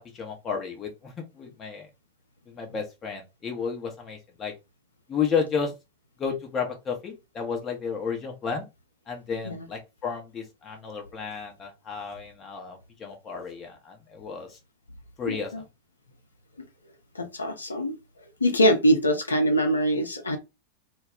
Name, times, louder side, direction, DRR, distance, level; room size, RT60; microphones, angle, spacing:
voice 1, 0.1-1.9 2.5-4.5 5.1-5.7 6.2-8.6 9.1-14.6 15.2-15.6, left 6 dB, 25° left, 0.7 m, -32 dB
voice 2, 15.3-15.6 17.1-18.0 18.4-20.4, equal, 75° left, 0.6 m, -23 dB
2.2 x 2.2 x 3.5 m
figure-of-eight pair, 90°, 0 cm